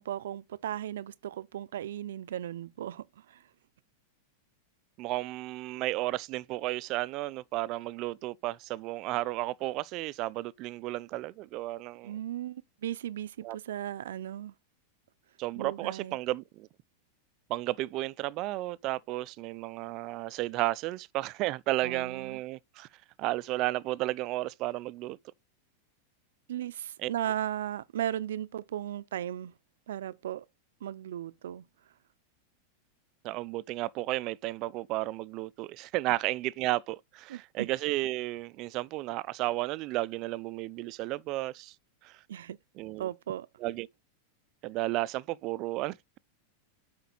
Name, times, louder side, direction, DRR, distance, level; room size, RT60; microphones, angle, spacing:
voice 1, 0.0-3.4 12.0-14.5 15.5-16.2 21.8-22.4 26.5-29.5 29.9-30.5 30.8-31.7 37.3-37.7 42.3-42.6 43.0-43.5, right 11 dB, 85° right, 0.5 m, -36 dB
voice 2, 5.0-12.1 13.4-13.6 15.4-16.7 17.5-22.9 23.2-25.2 27.0-27.1 33.2-41.7 42.0-42.1 42.8-43.1 43.6-43.9 44.6-46.2, right 18 dB, 40° right, 0.4 m, -33 dB
8.3 x 5.1 x 3.9 m
supercardioid pair, 155°, 0 cm